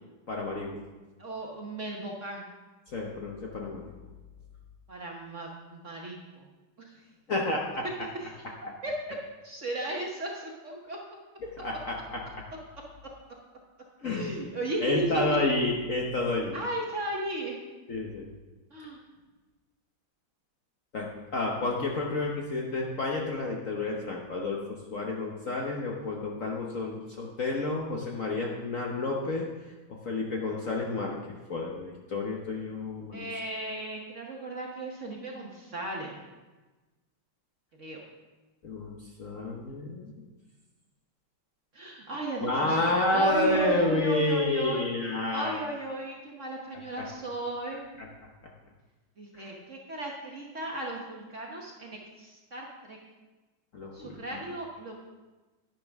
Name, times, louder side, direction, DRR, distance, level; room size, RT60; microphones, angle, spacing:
voice 1, 0.3-0.8 2.9-3.9 7.3-7.8 11.4-12.2 14.0-14.4 14.8-16.5 17.9-18.3 20.9-29.5 30.0-31.2 31.5-33.3 38.6-40.1 42.4-45.6 47.0-47.1 47.7-48.1 49.3-49.5 53.7-54.4, left 2 dB, 50° left, -1 dB, 1.1 m, -30 dB
voice 2, 1.2-2.4 4.9-6.4 6.8-6.9 8.2-8.3 8.6-8.9 9.4-11.0 14.0-15.4 16.5-17.6 18.7-19.0 33.1-36.1 37.8-38.0 41.7-44.9 45.3-47.8 49.2-53.0 53.9-54.9, right 1 dB, 45° right, -1 dB, 1.1 m, -35 dB
11.0 x 10.5 x 3.5 m, 1.2 s
omnidirectional pair, 2.3 m